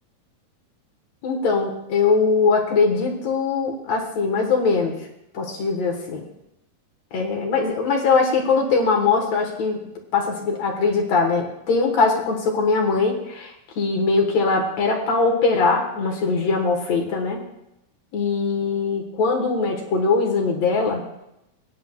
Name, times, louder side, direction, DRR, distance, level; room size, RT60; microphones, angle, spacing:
voice 1, 1.2-5.0 5.3-6.3 7.1-9.8 10.1-17.4 18.1-21.0, left 4 dB, 65° left, 2 dB, 2.5 m, -21 dB
17.0 x 9.5 x 2.3 m, 0.85 s
omnidirectional pair, 3.5 m